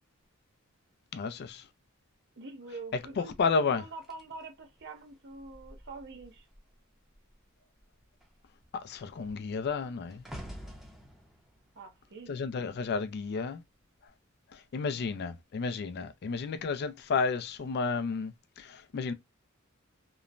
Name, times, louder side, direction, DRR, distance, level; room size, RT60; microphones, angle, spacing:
voice 1, 1.1-1.6 3.2-3.8 8.7-10.2 12.3-13.6 14.5-19.1, left 4 dB, 50° left, 0.4 m, -32 dB
voice 2, 2.4-6.5 11.8-12.3, right 3 dB, 55° right, 0.7 m, -45 dB
sound 1, 4.0-6.7 7.0-7.4 7.7-13.1 13.8-14.1, equal, ahead, 0.6 m, -50 dB
3.0 x 2.1 x 2.4 m
head